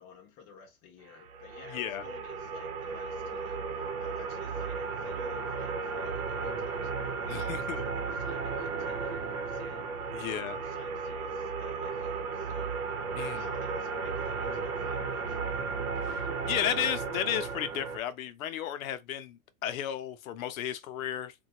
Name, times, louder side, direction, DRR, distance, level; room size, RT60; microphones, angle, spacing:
voice 1, 0.0-15.7, left 7 dB, 20° left, 0.5 m, -53 dB
sound 1, 1.2-18.0, right 5 dB, 85° right, 0.9 m, -34 dB
voice 2, 1.7-2.0 7.3-7.9 10.1-10.6 13.1-13.5 16.1-21.3, left 11 dB, 70° left, 0.6 m, -34 dB
3.2 x 2.2 x 2.9 m
supercardioid pair, 165°, 42 cm